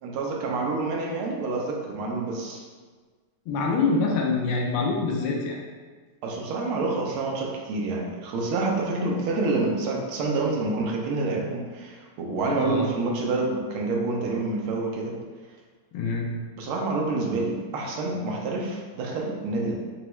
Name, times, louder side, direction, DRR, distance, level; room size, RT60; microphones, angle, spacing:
voice 1, 0.0-2.6 6.2-15.1 16.6-19.7, right 3 dB, 85° right, -1 dB, 1.6 m, -27 dB
voice 2, 3.5-5.6 12.5-12.9 15.9-16.3, left 4 dB, 80° left, -1 dB, 1.5 m, -25 dB
4.6 x 3.1 x 3.0 m, 1.4 s
omnidirectional pair, 2.3 m